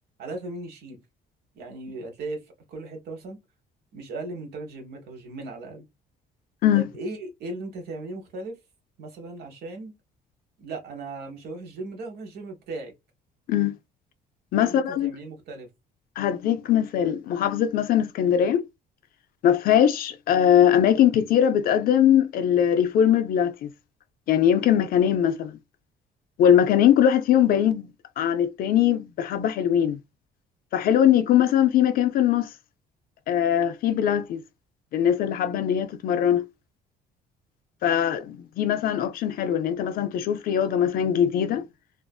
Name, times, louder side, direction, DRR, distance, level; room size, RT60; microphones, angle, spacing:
voice 1, 0.2-1.0 1.5-2.4 2.7-3.4 3.9-5.9 6.7-8.6 9.0-9.9 10.6-12.9 14.6-15.7, right 2 dB, 70° right, 1.0 m, -37 dB
voice 2, 14.5-15.1 16.2-18.6 19.4-23.7 24.3-25.6 26.4-27.9 28.2-30.0 30.7-32.5 33.3-34.4 34.9-36.4 37.8-41.6, left 10 dB, 60° left, 0.4 m, -21 dB
2.5 x 2.4 x 2.2 m
cardioid pair, 110°, 17 cm